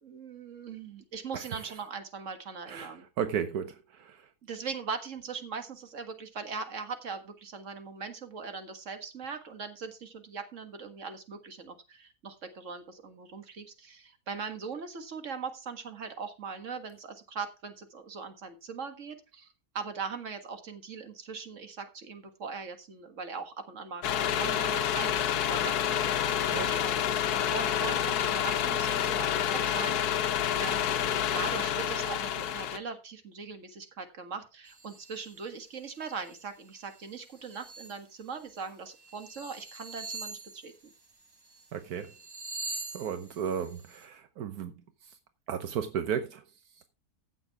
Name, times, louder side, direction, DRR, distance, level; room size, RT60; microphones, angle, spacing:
voice 1, 0.0-3.1 4.4-19.5 19.7-26.3 26.6-27.0 27.3-30.0 30.6-31.0 31.3-40.7, right 5 dB, 55° right, 2.0 m, -40 dB
voice 2, 2.7-4.3 26.5-26.7 41.7-42.1 42.9-44.7 45.5-46.4, right 8 dB, 80° right, 1.4 m, -34 dB
sound 1, 24.0-32.8, left 9 dB, 85° left, 1.3 m, -28 dB
sound 2, 34.7-35.4 35.8-36.4 36.7-38.0 38.5-38.6 39.0-41.6 42.0-44.0, right 3 dB, 20° right, 0.7 m, -43 dB
15.5 x 7.1 x 3.5 m
omnidirectional pair, 1.6 m